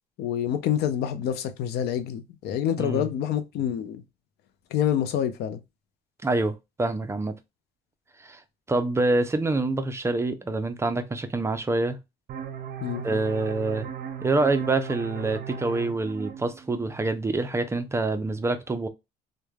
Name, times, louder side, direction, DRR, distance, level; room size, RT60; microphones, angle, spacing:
voice 1, 0.2-4.0 4.7-5.6 12.8-13.0, left 10 dB, 75° left, 0.5 m, -27 dB
voice 2, 2.8-3.1 6.2-7.3 8.2-8.4 8.7-12.0 13.0-13.9 14.2-18.9, right 2 dB, 15° right, 0.5 m, -26 dB
sound 1, 12.3-17.7, right 8 dB, 65° right, 0.5 m, -38 dB
3.2 x 2.2 x 2.3 m
cardioid pair, 110°, 17 cm